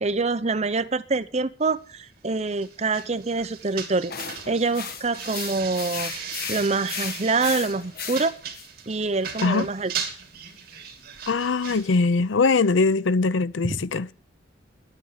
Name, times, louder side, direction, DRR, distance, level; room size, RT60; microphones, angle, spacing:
voice 1, 0.0-4.1 4.5-6.1 6.5-8.3 8.9-9.9 13.7-13.8, right 3 dB, 35° right, 0.8 m, -25 dB
sound 1, 2.4-12.0, right 7 dB, 55° right, 2.8 m, -38 dB
sound 2, 4.1-8.7, left 7 dB, 55° left, 1.6 m, -35 dB
voice 2, 11.3-14.1, left 4 dB, 85° left, 0.6 m, -22 dB
11.0 x 9.2 x 8.5 m
head